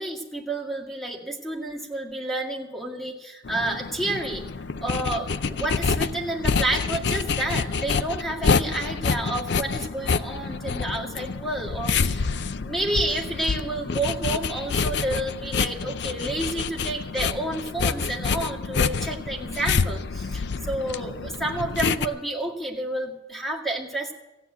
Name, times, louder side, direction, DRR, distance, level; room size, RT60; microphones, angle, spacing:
voice 1, 0.0-4.5 4.8-12.3 12.6-24.1, right 1 dB, ahead, 0 dB, 2.1 m, -30 dB
sound 1, 3.4-22.1, left 5 dB, 70° left, 0.5 m, -27 dB
15.0 x 9.6 x 8.0 m, 0.99 s
head